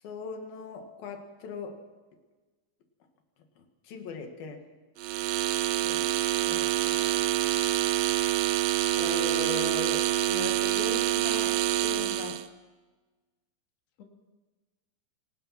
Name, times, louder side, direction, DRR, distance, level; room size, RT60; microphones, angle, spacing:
voice 1, 0.0-1.8 3.6-4.6 9.0-12.4, left 4 dB, 60° left, 5 dB, 3.5 m, -38 dB
sound 1, 5.0-12.5, right 14 dB, 85° right, 2.0 m, -26 dB
voice 2, 5.8-6.1 6.4-7.2 14.0-14.1, left 5 dB, 40° left, 1 dB, 2.9 m, -47 dB
23.0 x 19.0 x 5.9 m, 1.3 s
omnidirectional pair, 5.2 m